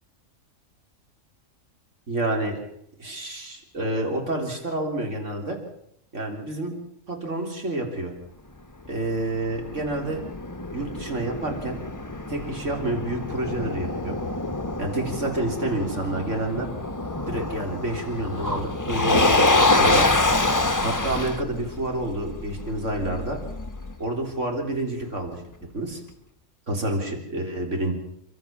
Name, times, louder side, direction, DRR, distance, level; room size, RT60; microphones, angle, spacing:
voice 1, 2.1-2.6 3.0-5.6 6.1-6.7 7.1-8.1 8.9-10.2 10.7-11.8 12.3-14.2 14.8-16.7 17.3-20.1 20.8-23.4 24.0-25.4 25.7-26.0 26.7-27.9, right 2 dB, 65° right, 2 dB, 4.1 m, -28 dB
Motor vehicle (road), 8.9-23.9, left 2 dB, 15° left, 1.1 m, -26 dB
29.5 x 13.0 x 7.4 m, 0.77 s
omnidirectional pair, 1.4 m